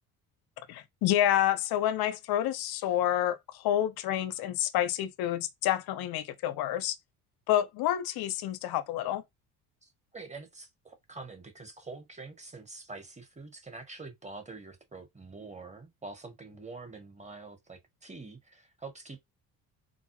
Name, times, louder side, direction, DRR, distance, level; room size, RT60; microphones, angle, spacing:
voice 1, 0.7-7.0 7.5-9.2, left 12 dB, 60° left, 0.7 m, -28 dB
voice 2, 9.8-19.3, right 3 dB, 15° right, 1.4 m, -46 dB
4.1 x 2.0 x 3.1 m
hypercardioid pair, 70°, 41 cm